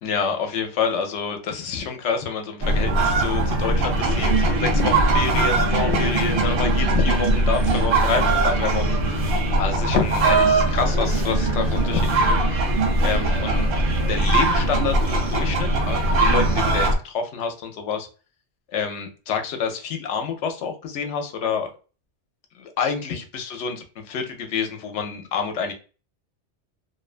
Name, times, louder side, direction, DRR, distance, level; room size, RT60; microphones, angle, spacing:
voice 1, 0.0-12.7 13.0-13.7 14.1-18.1 18.7-21.7 22.5-25.7, left 6 dB, 85° left, 5 dB, 0.9 m, -28 dB
sound 1, 2.6-17.0, right 2 dB, 60° right, 0.8 m, -20 dB
2.5 x 2.1 x 2.4 m, 0.35 s
omnidirectional pair, 1.2 m